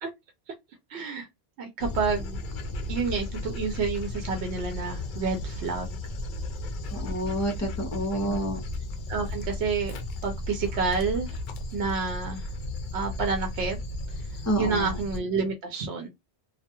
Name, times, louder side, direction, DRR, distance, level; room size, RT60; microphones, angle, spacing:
voice 1, 0.9-1.3 1.6-2.4 2.9-6.0 8.1-8.5 9.1-11.4 11.7-12.4 12.9-13.8 14.6-16.1, right 5 dB, 90° right, 0.8 m, -29 dB
Dog, 1.8-15.2, left 2 dB, 60° left, 0.6 m, -34 dB
voice 2, 6.9-8.6 14.5-14.9, right 1 dB, 20° left, 0.6 m, -28 dB
2.3 x 2.2 x 2.8 m
omnidirectional pair, 1.1 m